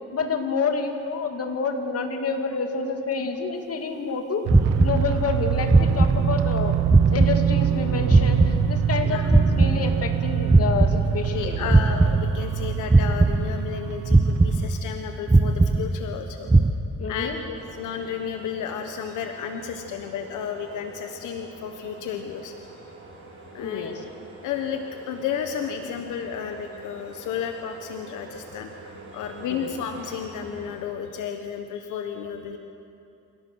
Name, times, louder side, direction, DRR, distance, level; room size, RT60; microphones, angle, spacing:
voice 1, 0.1-4.4 4.8-6.8 7.1-11.7 17.0-17.4 23.5-24.0 29.5-29.7, left 4 dB, 50° left, 4 dB, 2.6 m, -28 dB
sound 1, 4.5-5.4 5.7-6.6 6.9-9.0 9.3-11.4 11.7-12.6 12.9-13.8 14.1-15.0 15.3-16.2 16.5-16.7, right 2 dB, 15° right, 0.8 m, -20 dB
Granular Guitar, 4.5-14.8, right 10 dB, 85° right, 1.0 m, -26 dB
voice 2, 9.0-9.3 10.9-11.0 11.3-16.5 17.1-22.5 23.5-24.0 24.4-32.6, left 7 dB, 85° left, 5 dB, 1.4 m, -32 dB
sound 2, 17.5-30.8, right 2 dB, 45° right, 6.8 m, -45 dB
27.5 x 17.5 x 6.4 m, 2.6 s
cardioid pair, 90°, 30 cm